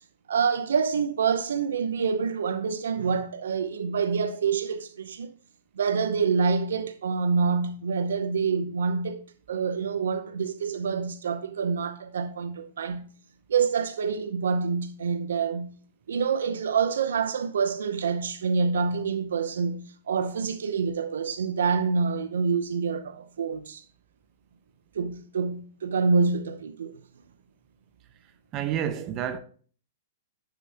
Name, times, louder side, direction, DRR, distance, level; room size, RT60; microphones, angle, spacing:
voice 1, 0.3-5.3 5.8-13.1 13.5-15.7 16.1-23.8 24.9-27.0, right 5 dB, 80° right, 0.7 m, -27 dB
voice 2, 28.5-29.4, right 10 dB, 35° right, 0.9 m, -29 dB
9.8 x 6.8 x 2.8 m
hypercardioid pair, 125°, 0 cm